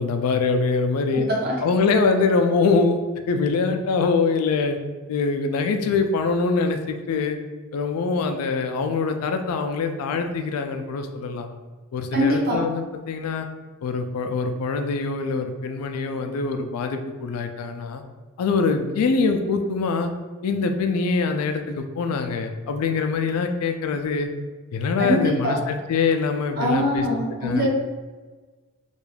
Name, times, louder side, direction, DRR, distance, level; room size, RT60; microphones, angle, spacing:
voice 1, 0.0-1.3 1.6-3.0 3.3-4.8 5.1-7.4 7.7-11.5 11.9-13.5 13.8-18.0 18.4-20.1 20.4-24.3 24.7-27.1 27.4-27.7, left 4 dB, 80° left, 6 dB, 0.3 m, -24 dB
voice 2, 1.1-1.6 12.1-12.6 25.0-25.6 26.6-27.7, equal, 45° right, -3 dB, 0.6 m, -23 dB
2.4 x 2.2 x 3.2 m, 1.3 s
head